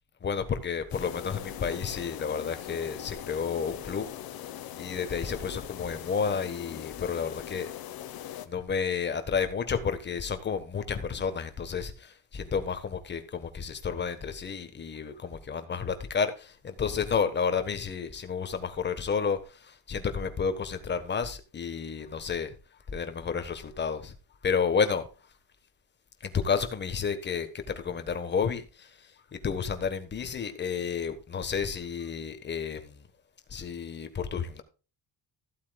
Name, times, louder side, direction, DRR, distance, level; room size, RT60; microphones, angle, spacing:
voice 1, 0.2-4.1 4.4-7.7 8.5-22.5 22.9-24.1 24.4-25.0 26.2-33.0 33.5-34.6, left 6 dB, 30° left, 1.4 m, -31 dB
sound 1, 0.9-8.5, left 12 dB, 70° left, 1.3 m, -41 dB
15.0 x 8.5 x 2.4 m
cardioid pair, 175°, 37 cm